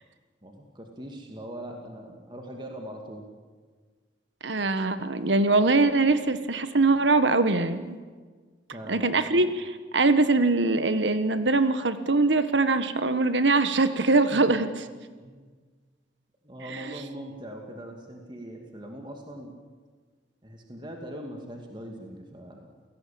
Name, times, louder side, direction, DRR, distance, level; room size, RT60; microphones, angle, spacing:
voice 1, 0.4-3.2 8.7-9.1 9.4-9.5 14.0-14.6 15.2-15.4 16.4-19.5 20.4-22.7, right 1 dB, 25° right, 2 dB, 2.5 m, -41 dB
voice 2, 4.4-8.0 8.9-14.7, right 3 dB, 80° right, 11 dB, 1.4 m, -22 dB
29.5 x 18.0 x 8.7 m, 1.5 s
head